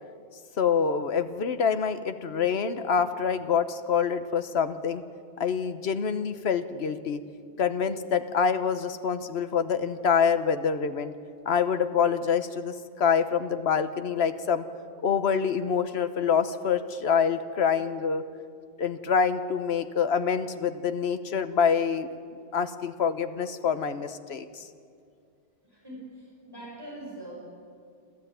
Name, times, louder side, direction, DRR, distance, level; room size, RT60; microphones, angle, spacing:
voice 1, 0.6-5.0 5.4-7.2 7.6-11.1 11.4-14.6 15.0-18.2 18.8-22.1 22.5-24.6, left 6 dB, 80° left, 10 dB, 1.3 m, -26 dB
voice 2, 25.6-27.4, right 1 dB, 20° right, -4 dB, 5.7 m, -43 dB
28.0 x 13.5 x 9.2 m, 2.3 s
omnidirectional pair, 1.1 m